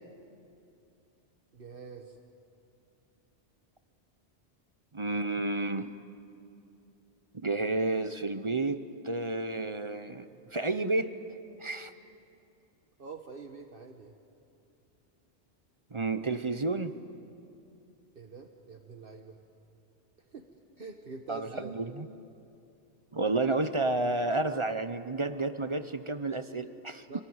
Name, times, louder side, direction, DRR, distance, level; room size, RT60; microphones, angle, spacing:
voice 1, 1.5-2.2 13.0-14.1 18.1-19.4 20.2-20.5 20.8-21.7 27.1-27.2, right 4 dB, 55° right, 4 dB, 1.3 m, -45 dB
voice 2, 4.9-5.9 7.3-8.8 9.0-11.1 11.6-11.9 15.9-16.9 21.3-22.1 23.1-27.1, right 2 dB, 30° right, 10 dB, 0.7 m, -31 dB
27.5 x 19.0 x 9.6 m, 2.7 s
omnidirectional pair, 1.2 m